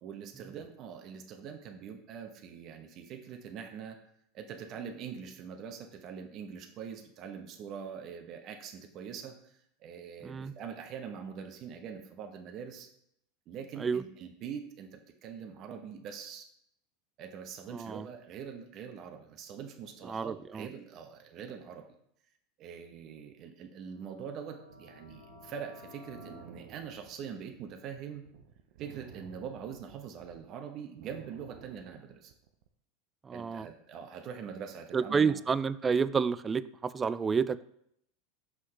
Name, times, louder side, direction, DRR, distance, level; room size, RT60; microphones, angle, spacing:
voice 1, 0.0-4.0 4.3-12.9 13.5-16.5 17.2-21.8 22.6-28.2 28.8-32.3 33.3-35.3, right 7 dB, 50° right, 4 dB, 0.9 m, -43 dB
voice 2, 10.2-10.5 13.8-14.0 17.7-18.1 20.1-20.7 33.2-33.7 34.9-37.6, right 5 dB, 25° right, 17 dB, 0.3 m, -30 dB
sound 1, 23.9-26.4, left 2 dB, 85° left, 1.1 m, -53 dB
sound 2, 24.7-30.4 30.8-32.7, right 9 dB, 70° right, 0.6 m, -54 dB
6.2 x 5.7 x 3.2 m, 0.72 s
hypercardioid pair, 100°, 0 cm